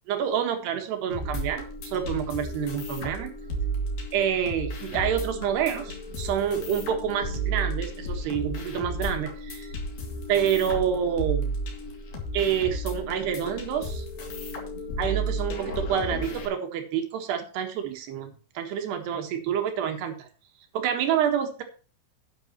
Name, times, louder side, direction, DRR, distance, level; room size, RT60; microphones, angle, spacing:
voice 1, 0.1-3.3 4.1-9.7 10.3-11.5 12.3-14.1 15.0-20.3 20.7-21.6, right 9 dB, 65° right, 5 dB, 3.2 m, -28 dB
sound 1, 1.1-16.5, right 1 dB, 45° left, 3.7 m, -33 dB
11.0 x 9.6 x 3.0 m, 0.37 s
omnidirectional pair, 5.8 m